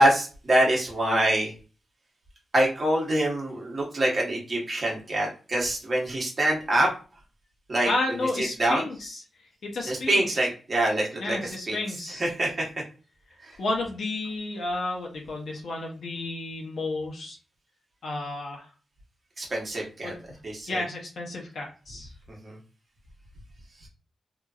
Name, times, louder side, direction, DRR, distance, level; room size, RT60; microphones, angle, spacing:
voice 1, 0.0-1.5 2.5-6.9 7.7-8.9 9.8-12.7 13.4-13.6 19.4-20.1 20.4-20.8 22.3-22.6 23.8-23.9, right 1 dB, 35° right, -2 dB, 1.1 m, -25 dB
voice 2, 7.8-9.2 9.6-10.3 11.2-12.3 13.6-17.4 18.0-18.7 20.0-20.2 20.7-22.1, left 2 dB, 70° left, 0 dB, 0.8 m, -31 dB
2.9 x 2.6 x 2.4 m, 0.35 s
wide cardioid pair, 130°, 0 cm